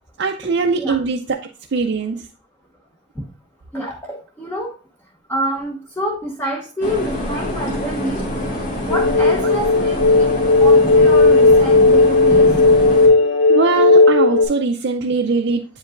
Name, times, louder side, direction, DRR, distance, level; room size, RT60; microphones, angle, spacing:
voice 1, 0.2-1.2 1.7-2.2 13.5-15.6, right 4 dB, 65° right, 2 dB, 0.5 m, -20 dB
voice 2, 3.7-4.7 5.3-8.2 8.8-10.3 10.6-12.8, equal, 10° left, -2 dB, 0.8 m, -26 dB
sound 1, 6.8-13.1, left 1 dB, 45° left, 1.7 m, -26 dB
sound 2, 8.9-14.5, left 3 dB, 65° left, 1.0 m, -13 dB
8.0 x 5.2 x 2.5 m, 0.36 s
head